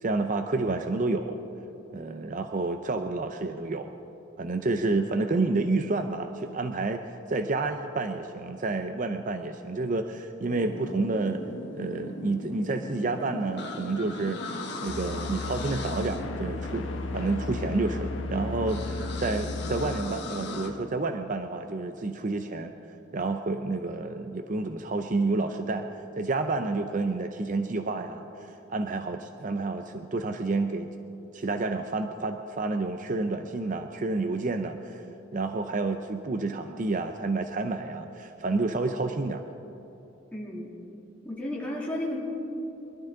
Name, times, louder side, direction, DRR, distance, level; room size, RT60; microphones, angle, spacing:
voice 1, 0.0-1.4 1.9-3.9 4.4-7.0 7.3-11.4 11.7-14.4 14.8-22.7 23.1-25.9 26.1-30.9 31.3-35.0 35.3-39.4, right 3 dB, 40° right, 7 dB, 0.6 m, -29 dB
sound 1, 10.5-20.7, left 1 dB, 60° left, 1.6 m, -38 dB
sound 2, 14.9-20.0, left 3 dB, 80° left, 1.0 m, -35 dB
voice 2, 40.3-40.7 41.2-42.2, left 1 dB, 5° left, -5 dB, 2.8 m, -33 dB
24.0 x 12.0 x 3.8 m, 3.0 s
head